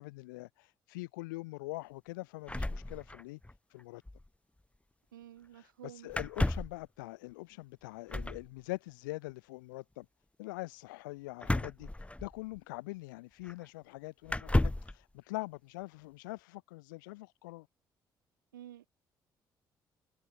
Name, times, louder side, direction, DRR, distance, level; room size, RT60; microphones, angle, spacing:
voice 1, 0.0-3.4 3.7-4.0 5.5-10.1 10.4-17.7, left 22 dB, 80° left, 3.0 m, -43 dB
sound 1, 2.5-3.5 3.8-4.3 6.1-6.8 8.1-8.5 11.4-12.6 13.4-13.5 14.3-15.0, left 1 dB, 10° left, 2.3 m, -32 dB
voice 2, 5.1-6.1 18.5-18.9, right 12 dB, 90° right, 3.3 m, -50 dB
hypercardioid pair, 45°, 10 cm